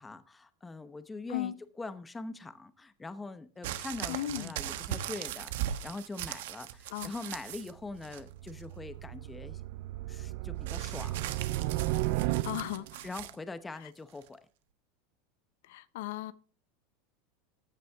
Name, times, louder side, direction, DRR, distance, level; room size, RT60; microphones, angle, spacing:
voice 1, 0.0-9.6 10.1-11.4 13.0-14.4, left 3 dB, 10° left, 0.8 m, -43 dB
sound 1, 3.6-7.7 8.0-8.6 10.7-13.4 14.2-14.3, right 12 dB, 75° right, 1.2 m, -39 dB
voice 2, 4.1-4.5 6.9-7.1 12.3-13.1 13.8-13.9 15.6-16.3, left 14 dB, 70° left, 0.8 m, -36 dB
sound 2, 7.7-13.0, right 17 dB, 55° right, 0.4 m, -34 dB
14.5 x 10.0 x 3.5 m
supercardioid pair, 155°, 0 cm